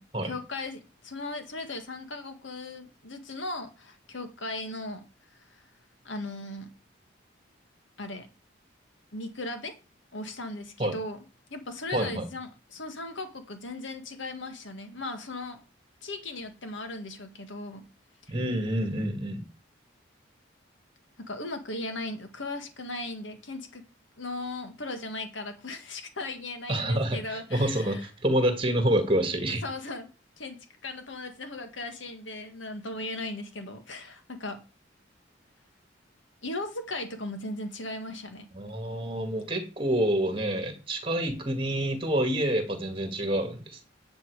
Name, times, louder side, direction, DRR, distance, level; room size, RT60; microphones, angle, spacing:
voice 1, 0.2-5.1 5.3-5.6 6.0-6.7 8.0-8.3 9.1-9.8 10.1-11.2 11.5-15.6 16.0-17.9 18.2-18.4 21.2-23.8 24.2-28.1 29.5-30.1 30.4-34.6 36.4-38.5, left 2 dB, 75° left, 1.8 m, -37 dB
voice 2, 11.9-12.2 18.3-19.5 26.7-29.6 38.5-43.9, right 1 dB, 25° right, 2.1 m, -27 dB
10.5 x 7.7 x 4.9 m
head